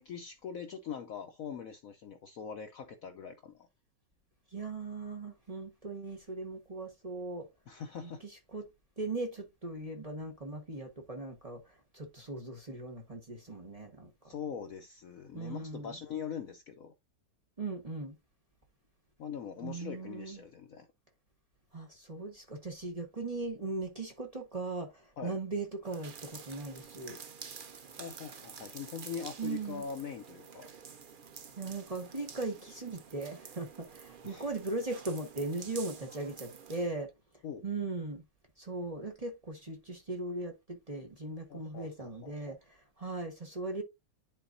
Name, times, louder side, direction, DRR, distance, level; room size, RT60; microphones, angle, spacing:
voice 1, 0.0-3.7 7.7-8.2 14.2-16.9 19.2-20.9 25.2-25.4 28.0-30.7 34.2-34.5 37.4-37.6 41.5-42.6, left 7 dB, 60° left, 0.9 m, -42 dB
voice 2, 4.5-7.5 8.5-8.7 9.0-11.6 11.9-14.1 15.3-15.9 17.6-18.1 19.6-20.4 21.7-27.2 29.4-29.8 31.6-37.1 37.6-38.2 38.6-42.6 43.0-43.8, right 3 dB, 20° right, 1.3 m, -38 dB
sound 1, 25.8-36.9, right 6 dB, 70° right, 0.4 m, -49 dB
11.0 x 4.0 x 2.6 m
omnidirectional pair, 2.0 m